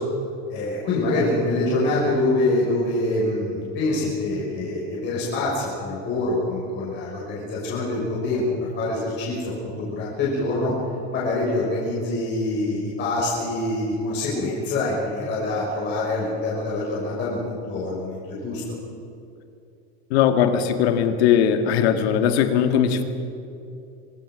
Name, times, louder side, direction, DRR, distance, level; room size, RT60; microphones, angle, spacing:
voice 1, 0.5-10.7 11.1-18.6, left 2 dB, 35° left, -6 dB, 6.0 m, -25 dB
voice 2, 20.1-23.0, left 8 dB, 75° left, 7 dB, 2.0 m, -19 dB
25.0 x 18.5 x 6.3 m, 2.6 s
supercardioid pair, 170°, 32 cm